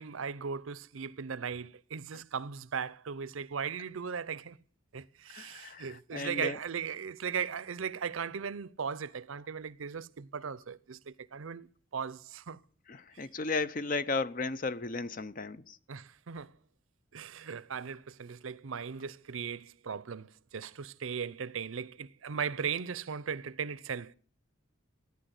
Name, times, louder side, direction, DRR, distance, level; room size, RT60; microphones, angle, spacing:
voice 1, 0.0-4.6 4.9-11.7 11.9-12.6 15.9-16.5 17.1-24.1, right 6 dB, 80° right, 0.6 m, -38 dB
voice 2, 5.3-6.6 12.9-15.8, left 3 dB, 40° left, 0.6 m, -35 dB
14.0 x 9.7 x 8.0 m
head